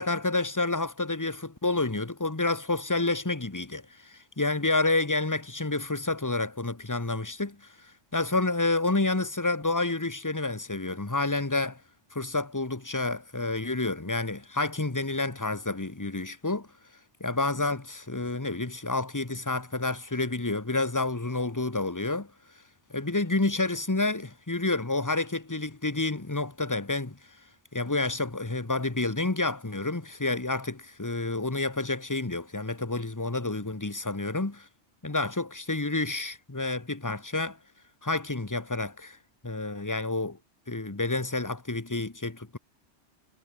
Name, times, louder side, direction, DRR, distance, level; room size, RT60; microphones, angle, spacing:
voice 1, 0.0-7.7 8.1-11.8 12.1-16.7 17.2-22.3 22.9-27.2 27.7-34.7 35.0-37.6 38.0-39.2 39.4-40.4 40.7-42.6, left 2 dB, 15° left, 1.3 m, -29 dB
omnidirectional pair, 1.3 m